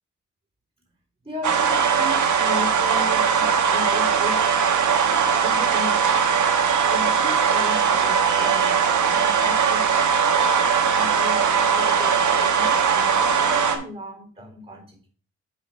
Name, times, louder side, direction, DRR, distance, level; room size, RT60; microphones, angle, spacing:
voice 1, 1.2-4.4 5.4-6.2 6.9-9.8 10.3-15.1, left 1 dB, 20° right, 2 dB, 3.8 m, -36 dB
sound 1, 1.4-13.8, right 6 dB, 85° right, 1.3 m, -20 dB
8.1 x 5.8 x 3.9 m, 0.43 s
wide cardioid pair, 115°, 29 cm